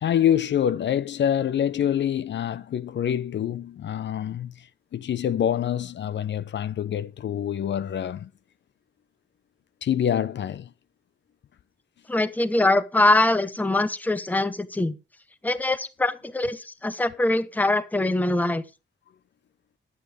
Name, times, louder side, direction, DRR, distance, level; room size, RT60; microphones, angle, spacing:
voice 1, 0.0-4.7 4.9-8.3 9.8-10.7, left 10 dB, 65° left, 0.5 m, -26 dB
voice 2, 12.1-15.0 15.4-18.6, left 2 dB, 10° left, 0.7 m, -23 dB
11.0 x 8.6 x 4.9 m
wide cardioid pair, 170°, 20 cm